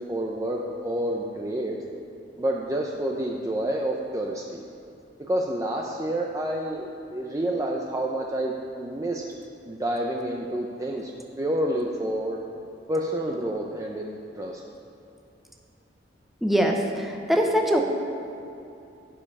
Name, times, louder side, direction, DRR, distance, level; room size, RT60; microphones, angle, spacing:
voice 1, 0.0-1.8 2.4-4.6 5.3-9.2 9.7-11.1 11.4-12.4 12.9-14.6, right 1 dB, 20° right, 0 dB, 0.6 m, -29 dB
voice 2, 16.4-17.8, equal, ahead, 1 dB, 0.9 m, -22 dB
16.0 x 5.5 x 5.4 m, 2.7 s
head